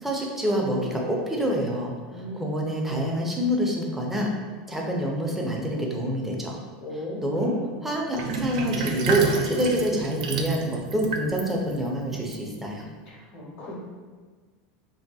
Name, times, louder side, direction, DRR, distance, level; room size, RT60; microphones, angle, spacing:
voice 1, 0.0-4.3 4.7-6.6 6.9-7.6 7.8-12.8, right 1 dB, 5° right, -1 dB, 0.4 m, -27 dB
voice 2, 2.1-2.5 6.8-7.7 13.1-13.7, left 1 dB, 60° left, -5 dB, 0.8 m, -37 dB
Sink (filling or washing), 8.2-12.9, right 4 dB, 85° right, 0.3 m, -30 dB
3.1 x 2.7 x 2.3 m, 1.4 s
supercardioid pair, 135°, 4 cm